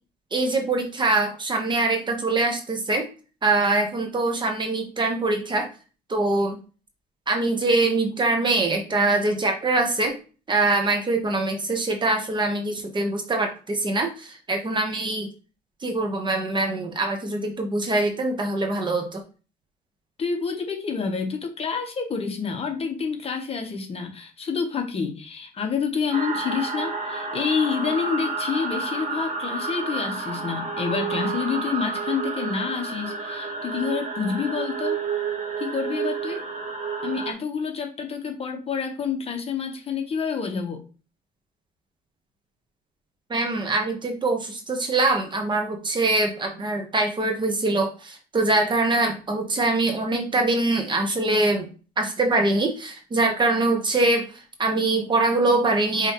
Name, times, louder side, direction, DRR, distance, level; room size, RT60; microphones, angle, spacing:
voice 1, 0.3-3.1 3.4-5.7 6.1-6.6 7.3-10.2 10.5-15.3 15.8-19.2 43.3-51.7 52.0-54.3 54.6-56.1, right 2 dB, 25° right, 4 dB, 1.1 m, -23 dB
voice 2, 20.2-35.0 35.6-36.4 37.0-40.8, left 5 dB, 35° left, 4 dB, 1.0 m, -28 dB
sound 1, 26.1-37.3, right 4 dB, 50° right, 1.3 m, -30 dB
5.5 x 3.0 x 3.0 m, 0.35 s
cardioid pair, 110°, 17 cm